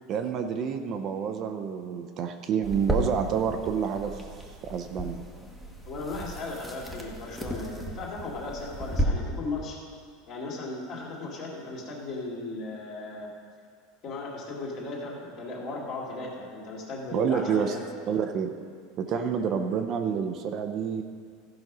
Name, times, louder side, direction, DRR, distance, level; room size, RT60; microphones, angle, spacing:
voice 1, 0.1-4.2 4.6-5.2 17.1-17.8 18.1-18.5 19.0-21.0, right 7 dB, 35° right, 6 dB, 0.6 m, -28 dB
sound 1, 2.6-9.0, right 1 dB, ahead, 1.1 m, -34 dB
voice 2, 5.9-9.8 10.3-13.3 14.0-17.8 19.1-19.3, left 3 dB, 40° left, -2 dB, 2.3 m, -36 dB
14.0 x 5.2 x 6.0 m, 2.1 s
supercardioid pair, 150°, 0 cm